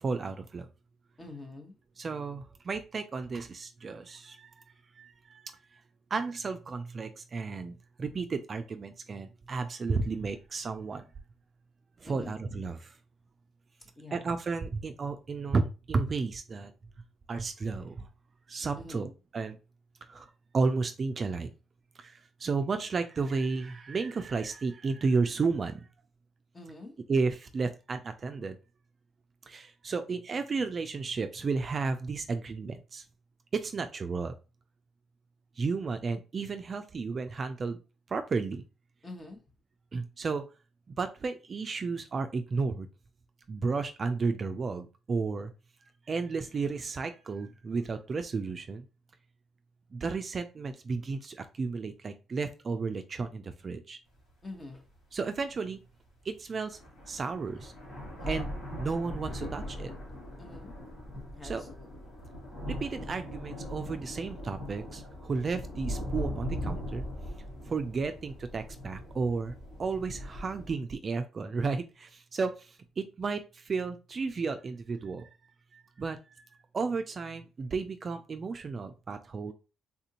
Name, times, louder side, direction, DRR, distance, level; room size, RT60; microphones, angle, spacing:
voice 1, 0.0-0.7 2.0-4.5 5.0-5.4 6.1-11.0 12.0-12.9 14.1-16.7 17.3-18.1 18.5-19.6 20.1-20.3 20.5-21.5 22.0-25.8 27.1-28.6 29.5-33.0 33.5-34.3 35.6-37.8 38.1-38.6 39.9-40.4 41.0-42.9 43.5-45.5 46.1-48.9 49.9-54.0 55.1-55.8 56.3-56.8 57.1-57.7 58.3-58.5 58.8-59.9 61.4-61.6 62.7-67.0 67.7-72.7 73.0-75.3 75.7-76.4 76.7-79.5, right 4 dB, 40° right, 0.4 m, -33 dB
voice 2, 1.2-1.7 12.0-12.3 14.0-14.3 18.7-19.1 26.5-26.9 39.0-39.4 54.4-54.9 58.2-58.4 60.4-60.9 61.3-62.1, left 2 dB, 30° left, 0.9 m, -46 dB
sound 1, 54.2-54.3 54.9-55.0 56.3-56.4 56.7-70.7, equal, 70° left, 1.8 m, -40 dB
3.6 x 2.5 x 2.8 m
cardioid pair, 90°, 0 cm